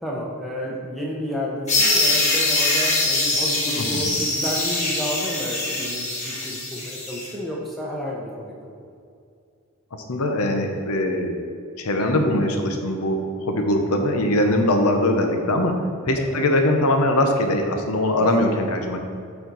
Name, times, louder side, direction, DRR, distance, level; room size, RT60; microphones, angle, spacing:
voice 1, 0.0-8.5 16.2-16.5 18.2-18.3, equal, ahead, -4 dB, 0.7 m, -31 dB
sound 1, 1.7-7.3, left 2 dB, 30° left, 1.4 m, -23 dB
voice 2, 3.8-4.1 10.1-11.4 11.8-15.8 16.0-19.0, left 1 dB, 90° left, 4 dB, 0.8 m, -21 dB
7.0 x 4.4 x 4.0 m, 2.3 s
head